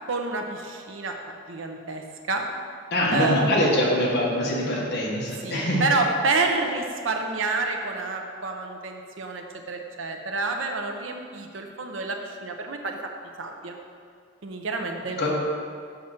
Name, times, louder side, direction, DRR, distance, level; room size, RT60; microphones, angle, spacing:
voice 1, 0.1-1.1 1.5-2.4 3.1-3.6 5.4-13.0 13.4-13.7 14.4-15.3, right 3 dB, 85° right, 3 dB, 0.8 m, -28 dB
voice 2, 2.9-5.8 15.2-15.3, left 1 dB, 60° left, -4 dB, 1.5 m, -23 dB
5.9 x 5.0 x 5.9 m, 2.2 s
head